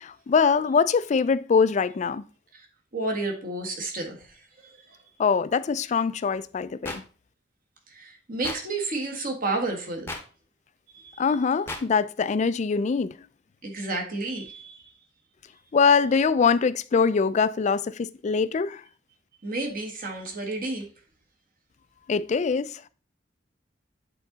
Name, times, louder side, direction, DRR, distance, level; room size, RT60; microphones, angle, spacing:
voice 1, 0.0-2.2 5.2-7.0 11.2-13.1 15.7-18.8 22.1-22.8, left 5 dB, 40° left, 0.3 m, -23 dB
voice 2, 2.9-4.3 4.6-4.7 7.9-10.1 10.9-11.1 13.6-14.8 19.4-20.9, right 2 dB, 50° right, 1.5 m, -31 dB
sound 1, 6.8-7.0 8.4-8.6 10.1-10.2 11.7-11.8, left 2 dB, 10° left, 0.8 m, -33 dB
8.3 x 3.8 x 3.9 m
head